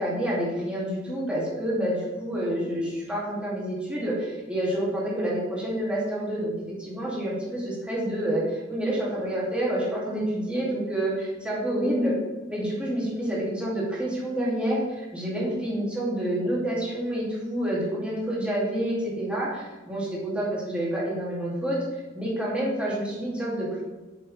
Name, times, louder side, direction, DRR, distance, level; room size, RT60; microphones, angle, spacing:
voice 1, 0.0-6.5 6.8-12.1 12.5-23.8, right 1 dB, 5° right, -6 dB, 2.4 m, -28 dB
7.6 x 6.3 x 3.3 m, 1.2 s
head